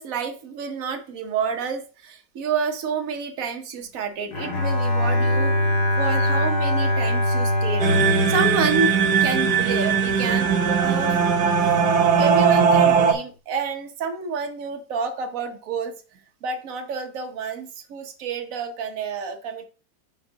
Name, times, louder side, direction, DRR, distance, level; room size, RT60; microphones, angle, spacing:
voice 1, 0.0-5.7 6.0-8.9 9.2-10.5 10.8-11.8 12.2-19.7, right 5 dB, 55° right, 5 dB, 1.3 m, -29 dB
Bowed string instrument, 4.3-9.6, left 1 dB, 70° left, 2.0 m, -23 dB
sound 1, 7.8-13.1, right 6 dB, 70° right, 1.5 m, -19 dB
5.7 x 3.8 x 5.6 m, 0.35 s
omnidirectional pair, 1.9 m